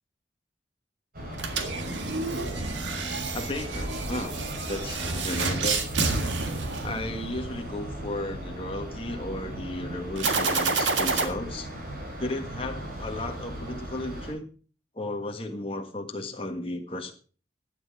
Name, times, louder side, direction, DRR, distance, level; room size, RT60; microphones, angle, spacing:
sound 1, 1.1-14.3, right 1 dB, 50° right, 5.0 m, -37 dB
sound 2, 1.3-7.5 10.2-11.3, right 4 dB, 80° right, 1.8 m, -29 dB
voice 1, 3.3-4.3 4.7-5.8 6.8-11.7 12.2-14.5 14.9-17.1, left 2 dB, 30° left, 3 dB, 1.6 m, -34 dB
12.0 x 9.7 x 5.0 m, 0.39 s
head